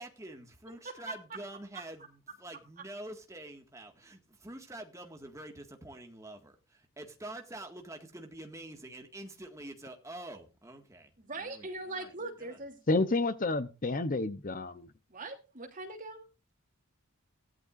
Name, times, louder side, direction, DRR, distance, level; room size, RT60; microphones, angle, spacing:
voice 1, 0.0-11.1 11.4-12.6, right 1 dB, 15° right, 1.9 m, -47 dB
voice 2, 0.8-1.4 11.2-12.8 15.1-16.3, right 2 dB, 40° right, 3.0 m, -41 dB
voice 3, 12.9-14.9, left 2 dB, 40° left, 0.8 m, -30 dB
16.5 x 12.0 x 2.6 m
head